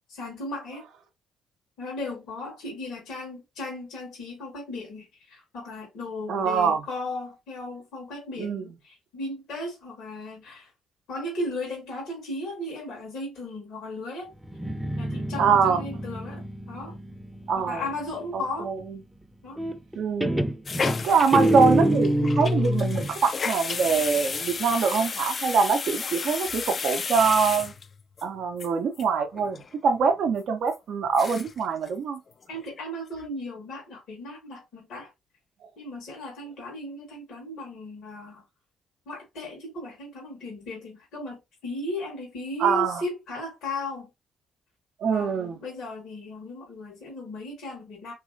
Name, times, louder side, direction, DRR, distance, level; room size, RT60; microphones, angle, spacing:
voice 1, 0.1-0.8 1.8-10.7 11.1-14.3 15.0-17.0 17.6-18.7 19.4-19.6 32.5-35.1 35.8-38.4 39.1-44.1 45.0-48.1, left 2 dB, 70° left, 1.0 m, -36 dB
voice 2, 6.3-6.8 8.4-8.7 15.4-15.8 17.5-17.8 18.3-18.8 20.0-20.3 21.0-27.7 28.2-32.2 42.6-43.0 45.0-45.6, right 5 dB, 65° right, 0.4 m, -24 dB
Guitar, 14.4-18.0 19.6-20.0 20.2-23.1, equal, 5° right, 0.5 m, -26 dB
sound 1, 20.7-28.2 28.6-28.7 29.0-29.1 29.3-29.7 30.1-30.2 30.7-30.8 31.1-31.6 31.9-32.0 32.3-32.8 33.2-33.3, left 5 dB, 45° left, 0.3 m, -33 dB
3.0 x 2.5 x 2.5 m
hypercardioid pair, 45°, 0 cm